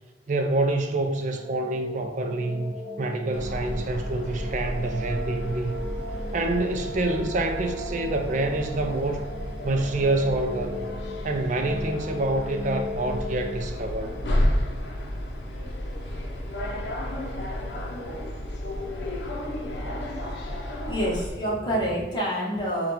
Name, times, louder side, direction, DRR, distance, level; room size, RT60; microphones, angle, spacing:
voice 1, 0.3-5.8 6.3-9.2 9.6-10.9 11.2-14.1, right 2 dB, 45° right, 5 dB, 0.4 m, -27 dB
sound 1, 1.2-15.9, left 1 dB, 20° right, 0.7 m, -38 dB
sound 2, 3.3-21.3, left 1 dB, 75° left, 0.6 m, -32 dB
voice 2, 20.9-22.9, equal, 25° left, -4 dB, 1.0 m, -27 dB
3.6 x 2.3 x 4.2 m, 1.3 s
head